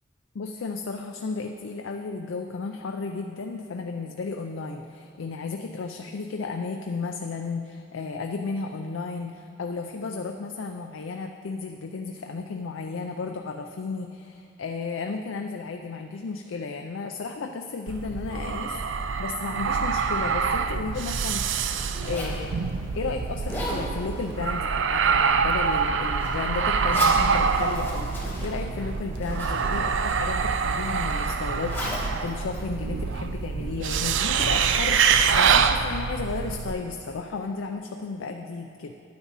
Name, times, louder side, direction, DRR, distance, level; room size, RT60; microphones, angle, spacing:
voice 1, 0.3-18.8 19.2-21.5 22.0-22.6 22.9-38.9, left 4 dB, 90° left, 4 dB, 0.4 m, -33 dB
sound 1, 17.9-36.7, right 5 dB, 75° right, 0.4 m, -25 dB
Zipper (clothing), 20.8-33.4, left 1 dB, 10° left, 1.7 m, -38 dB
10.5 x 9.5 x 4.1 m, 2.4 s
head